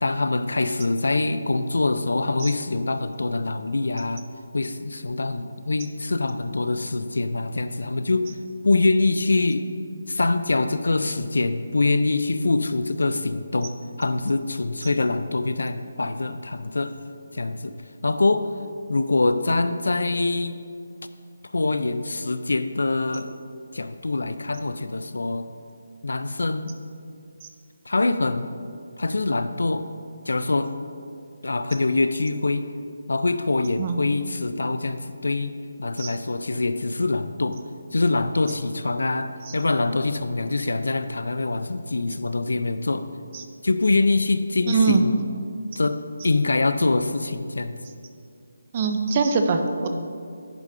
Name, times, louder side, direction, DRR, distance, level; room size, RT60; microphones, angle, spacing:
voice 1, 0.0-4.3 4.5-8.3 8.6-9.7 10.1-17.0 17.3-17.8 18.0-18.5 18.9-20.6 21.5-23.3 23.7-25.5 26.0-26.8 27.9-28.5 29.0-29.9 30.3-30.7 31.4-32.7 33.1-35.5 35.8-37.6 37.9-43.1 43.6-45.2 45.8-47.8, left 3 dB, 85° left, 11 dB, 0.4 m, -24 dB
voice 2, 44.7-45.0 48.7-49.9, right 4 dB, 20° right, 6 dB, 0.4 m, -22 dB
10.5 x 4.9 x 3.7 m, 2.3 s
hypercardioid pair, 180°, 0 cm